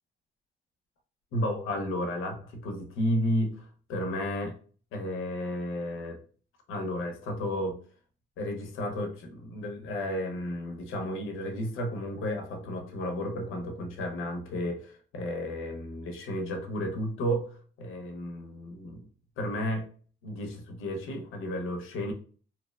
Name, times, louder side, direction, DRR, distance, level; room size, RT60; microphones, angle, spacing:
voice 1, 1.3-4.5 4.9-6.2 6.7-7.8 8.4-17.5 17.8-19.1 19.4-19.9 20.2-22.1, equal, 80° left, 4 dB, 0.7 m, -32 dB
2.7 x 2.0 x 2.3 m, 0.41 s
cardioid pair, 120°, 21 cm